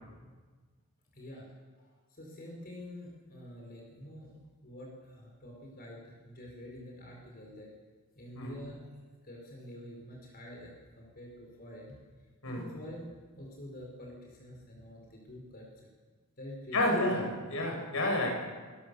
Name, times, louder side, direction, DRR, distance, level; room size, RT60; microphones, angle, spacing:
voice 1, 1.1-1.5 1.8-4.3 4.6-7.7 8.1-9.0 9.2-11.9 12.4-15.9 16.4-16.9 17.2-17.4, left 1 dB, 45° left, -1 dB, 5.0 m, -47 dB
voice 2, 16.7-18.3, left 1 dB, 65° left, 2 dB, 6.6 m, -30 dB
26.5 x 19.0 x 7.0 m, 1.4 s
head